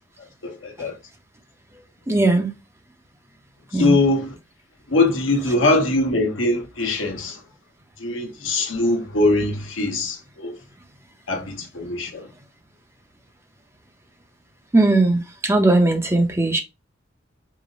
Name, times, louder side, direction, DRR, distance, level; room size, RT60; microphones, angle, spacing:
voice 1, 0.4-0.9 3.7-4.3 4.9-7.4 8.0-10.5 11.3-12.3, left 2 dB, 85° left, 1.1 m, -22 dB
voice 2, 2.1-2.5 3.7-4.0 14.7-16.6, right 2 dB, 15° right, 0.7 m, -18 dB
5.0 x 2.0 x 3.8 m
head